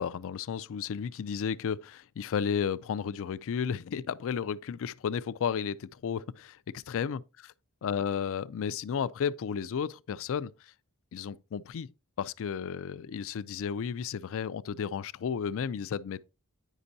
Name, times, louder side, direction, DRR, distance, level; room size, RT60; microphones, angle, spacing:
voice 1, 0.0-7.2 7.8-10.7 11.1-11.9 12.2-16.2, left 7 dB, 65° left, 0.4 m, -33 dB
9.9 x 5.2 x 2.7 m
head